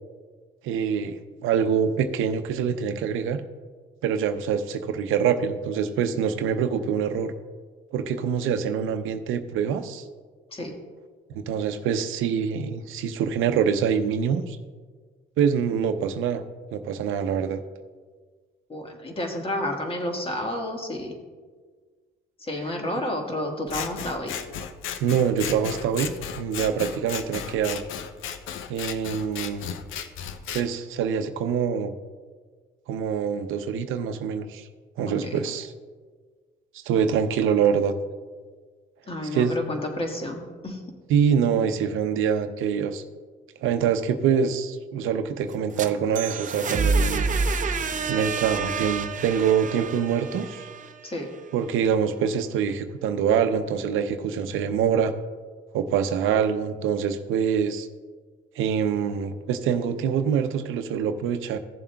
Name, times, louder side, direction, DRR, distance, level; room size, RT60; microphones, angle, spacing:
voice 1, 0.6-3.4 4.0-7.3 7.9-10.0 11.3-14.6 15.4-16.4 16.7-17.6 25.0-27.8 28.7-29.8 30.5-31.9 32.9-34.7 35.0-35.7 36.7-37.9 39.3-39.6 41.1-43.0 43.6-47.3 48.1-50.7 51.5-55.1 55.7-57.9 58.6-61.6, right 7 dB, 85° right, 9 dB, 0.7 m, -25 dB
voice 2, 18.7-21.1 22.4-24.4 35.1-35.4 39.1-40.8 51.0-51.3, left 1 dB, 30° left, 2 dB, 1.6 m, -30 dB
Scissors, 23.7-30.6, left 8 dB, 90° left, 0.6 m, -35 dB
sound 1, 45.5-51.4, right 4 dB, 40° right, 0.7 m, -28 dB
15.5 x 7.3 x 2.3 m, 1.5 s
cardioid pair, 90°, 20 cm